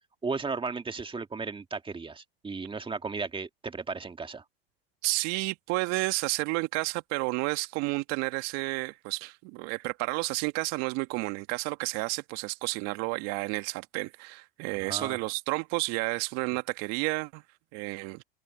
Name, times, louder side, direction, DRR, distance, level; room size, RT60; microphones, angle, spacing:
voice 1, 0.2-4.4 14.7-15.2, right 4 dB, 15° right, 2.2 m, -35 dB
voice 2, 5.0-17.4 17.7-18.2, right 25 dB, 60° right, 1.9 m, -31 dB
open air
hypercardioid pair, 95°, 30 cm